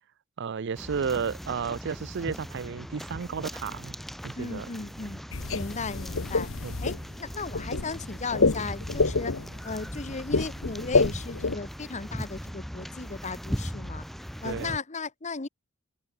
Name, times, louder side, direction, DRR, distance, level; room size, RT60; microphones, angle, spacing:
voice 1, 0.4-3.9 4.2-4.7 6.6-6.7 14.4-14.8, right 6 dB, 55° right, 0.5 m, -32 dB
sound 1, 0.7-14.8, equal, ahead, 1.6 m, -39 dB
voice 2, 4.4-5.2 5.5-6.5 6.8-9.3 9.6-14.0 14.4-15.5, left 4 dB, 35° left, 1.1 m, -36 dB
sound 2, 5.3-11.6, left 3 dB, 65° left, 1.1 m, -27 dB
head